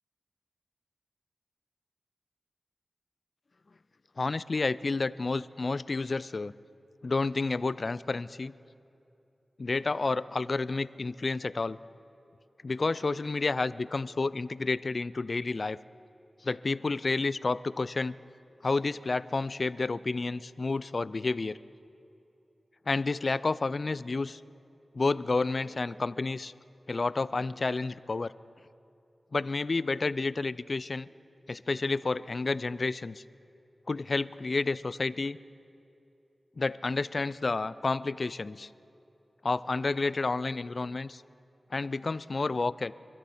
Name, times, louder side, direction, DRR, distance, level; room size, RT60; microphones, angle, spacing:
voice 1, 4.2-6.5 7.0-8.5 9.6-11.8 12.6-15.8 16.4-18.1 18.6-21.6 22.9-24.4 24.9-26.5 26.9-28.3 29.3-31.1 31.5-33.2 33.9-35.4 36.6-38.7 39.4-41.2 41.7-42.9, left 3 dB, 60° left, 17 dB, 0.4 m, -30 dB
25.5 x 13.0 x 4.3 m, 2.8 s
cardioid pair, 40°, 0 cm